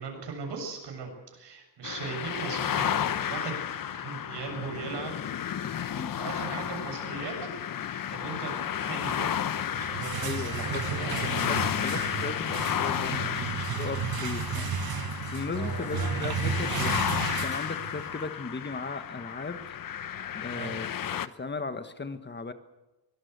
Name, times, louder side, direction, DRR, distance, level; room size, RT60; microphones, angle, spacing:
voice 1, 0.0-3.6 3.9-5.1 6.2-7.3 7.8-9.3 9.9-11.4 15.6-16.3 20.5-20.7, right 5 dB, 85° right, 3 dB, 7.4 m, -39 dB
sound 1, 1.8-21.3, left 9 dB, 55° left, 0.9 m, -32 dB
sound 2, 9.6-18.2, right 7 dB, 60° right, 1.6 m, -33 dB
voice 2, 10.2-11.6 11.8-14.8 15.1-16.9 17.4-19.7 20.3-22.5, left 4 dB, 25° left, 10 dB, 1.3 m, -37 dB
24.0 x 18.5 x 8.2 m, 1.1 s
wide cardioid pair, 135°, 40 cm